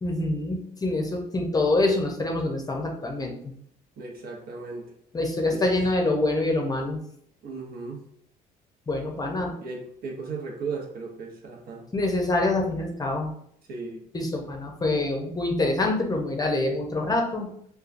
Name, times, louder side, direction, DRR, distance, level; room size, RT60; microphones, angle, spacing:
voice 1, 0.0-3.3 5.1-7.0 8.9-9.5 11.9-13.3 14.1-17.5, left 2 dB, 20° left, 1 dB, 0.6 m, -25 dB
voice 2, 4.0-4.9 5.5-5.9 7.4-8.0 9.6-11.8 13.7-14.0, right 4 dB, 65° right, 0 dB, 0.9 m, -36 dB
4.3 x 2.3 x 2.5 m, 0.67 s
cardioid pair, 110°, 17 cm